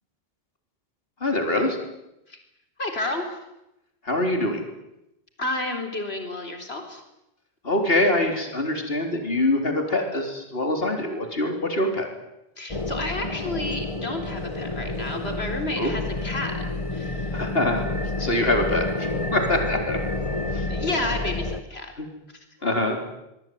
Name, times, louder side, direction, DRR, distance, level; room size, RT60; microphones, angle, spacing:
voice 1, 1.2-1.8 4.0-4.6 7.6-12.1 15.8-16.0 17.3-17.9 18.2-20.0 20.5-20.7 22.0-22.1 22.6-23.0, left 1 dB, 65° left, 4 dB, 4.3 m, -24 dB
voice 2, 2.8-3.4 5.4-7.0 12.6-16.6 16.9-17.4 18.2-18.3 20.7-21.9, left 2 dB, 85° left, 5 dB, 4.3 m, -31 dB
sound 1, 12.7-21.6, left 2 dB, 30° left, 1.4 m, -29 dB
24.5 x 22.5 x 9.5 m, 0.88 s
omnidirectional pair, 1.0 m